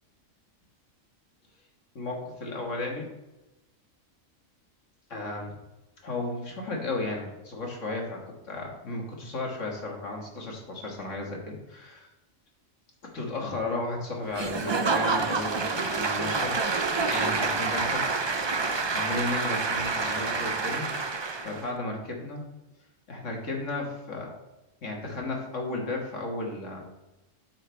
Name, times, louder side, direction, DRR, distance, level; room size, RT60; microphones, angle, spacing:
voice 1, 2.0-3.1 5.1-5.5 6.0-12.1 13.0-16.6 17.1-18.1 18.5-20.9 21.4-22.5 23.1-24.3 24.8-26.8, left 2 dB, 65° left, 0 dB, 2.0 m, -34 dB
Applause / Crowd, 14.3-21.7, right 4 dB, 45° right, 0.3 m, -28 dB
8.9 x 6.9 x 3.4 m, 0.99 s
omnidirectional pair, 1.4 m